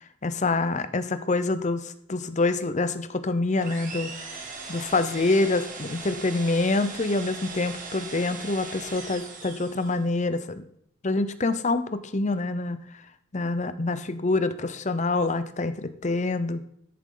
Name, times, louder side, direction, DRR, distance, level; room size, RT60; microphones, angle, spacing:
voice 1, 0.0-4.4 4.7-10.6 11.0-12.8 13.3-16.7, left 2 dB, 30° left, 12 dB, 0.6 m, -26 dB
sound 1, 3.6-10.1, right 4 dB, 35° right, 1.6 m, -39 dB
13.5 x 7.3 x 3.8 m, 0.73 s
head